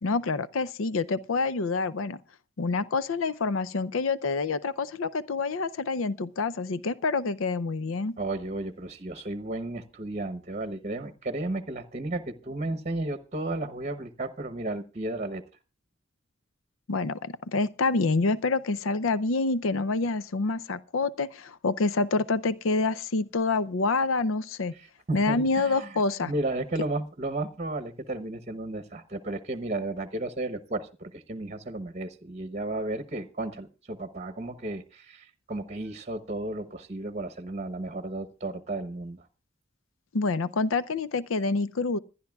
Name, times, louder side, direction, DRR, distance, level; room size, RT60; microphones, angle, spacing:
voice 1, 0.0-2.2 2.6-8.1 16.9-24.7 25.1-26.3 40.1-42.0, left 3 dB, 85° left, 0.6 m, -27 dB
voice 2, 8.2-15.4 24.8-39.3, right 2 dB, 35° right, 0.9 m, -33 dB
25.5 x 11.0 x 2.3 m
head